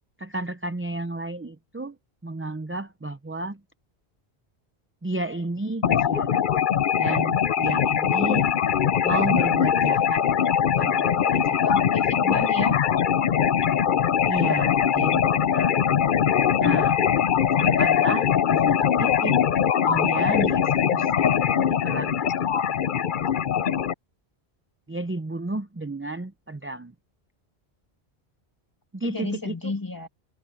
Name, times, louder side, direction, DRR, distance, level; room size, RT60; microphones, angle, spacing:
voice 1, 0.2-2.0 2.2-3.6 5.0-6.4 7.0-8.5 9.0-10.2 10.8-11.8 14.2-15.8 16.6-17.0 17.6-19.4 19.8-21.3 21.7-22.5 23.1-23.4 24.9-26.9 28.9-29.7, right 2 dB, 15° right, 0.5 m, -32 dB
sound 1, 5.8-23.9, left 8 dB, 55° left, 0.8 m, -22 dB
voice 2, 11.6-12.8 29.0-30.1, left 3 dB, 20° left, 1.6 m, -32 dB
omnidirectional pair, 1.1 m